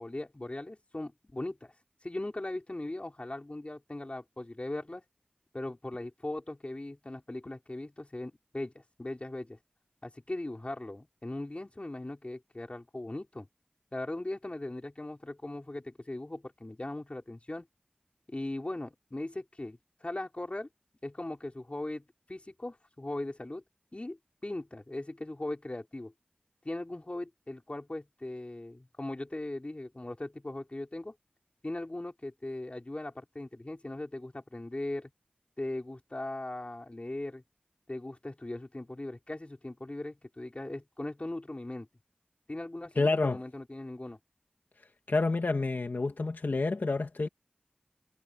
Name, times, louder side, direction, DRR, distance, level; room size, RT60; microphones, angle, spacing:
voice 1, 0.0-1.7 2.0-5.0 5.5-9.6 10.0-13.5 13.9-17.6 18.3-20.7 21.0-23.6 23.9-24.2 24.4-26.1 26.6-31.1 31.6-35.1 35.6-37.4 37.9-41.9 42.5-44.2, left 1 dB, 40° left, 4.8 m, -39 dB
voice 2, 43.0-43.4 45.1-47.3, left 3 dB, 80° left, 2.1 m, -28 dB
wide cardioid pair, 45°, 3 cm